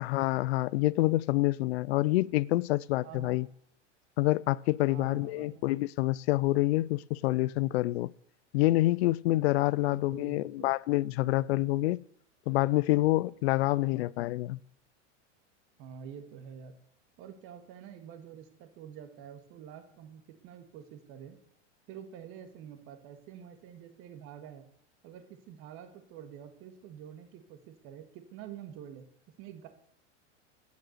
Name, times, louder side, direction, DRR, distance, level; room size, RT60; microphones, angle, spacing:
voice 1, 0.0-3.5 4.2-8.1 8.5-12.0 12.5-14.6, left 18 dB, 60° left, 0.5 m, -27 dB
voice 2, 3.0-3.4 4.9-5.6 9.8-10.7 13.6-14.0 15.8-16.7 17.2-21.4 21.9-24.7 25.0-29.1 29.4-29.7, right 9 dB, 35° right, 1.8 m, -47 dB
12.5 x 9.6 x 6.5 m
supercardioid pair, 160°, 37 cm